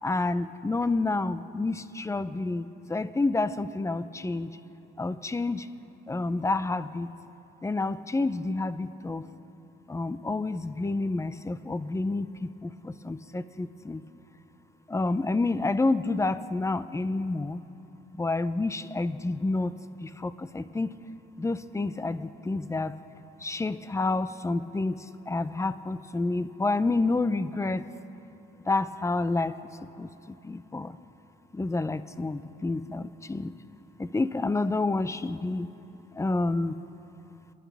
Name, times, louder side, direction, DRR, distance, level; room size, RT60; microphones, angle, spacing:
voice 1, 0.0-4.5 5.0-5.7 6.1-7.1 7.6-9.3 9.9-14.0 14.9-17.6 18.2-19.7 20.0-21.0 21.4-22.9 23.4-27.8 28.7-29.5 30.0-30.1 30.4-31.0 31.5-33.5 34.0-35.7 36.1-36.8, left 3 dB, 15° left, 13 dB, 0.5 m, -29 dB
28.5 x 11.0 x 3.5 m, 2.9 s
cardioid pair, 90°, 20 cm